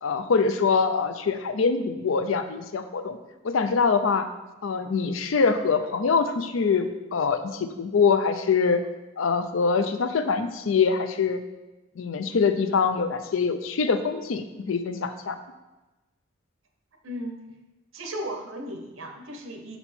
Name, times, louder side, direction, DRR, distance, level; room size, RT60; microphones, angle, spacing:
voice 1, 0.0-3.2 3.4-4.3 4.6-8.8 9.2-11.4 12.0-15.4, left 5 dB, 80° left, 9 dB, 0.5 m, -24 dB
voice 2, 17.0-17.4 17.9-19.8, equal, 85° right, 4 dB, 0.8 m, -35 dB
5.5 x 4.3 x 4.3 m, 1.1 s
head